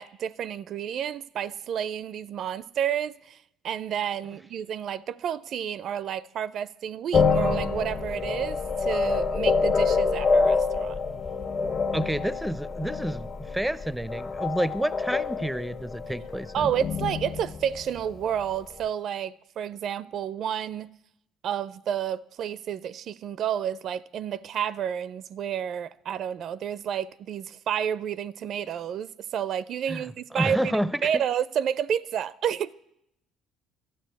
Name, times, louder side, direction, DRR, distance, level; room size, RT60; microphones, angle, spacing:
voice 1, 0.0-3.4 3.6-11.0 16.5-20.9 21.4-32.7, right 9 dB, 60° right, 0.4 m, -30 dB
sound 1, 7.1-18.6, left 4 dB, 45° left, 1.4 m, -27 dB
voice 2, 11.9-16.7 29.9-30.0 30.3-31.2, right 1 dB, ahead, 0.5 m, -29 dB
12.5 x 8.9 x 8.1 m
supercardioid pair, 85°, 0 cm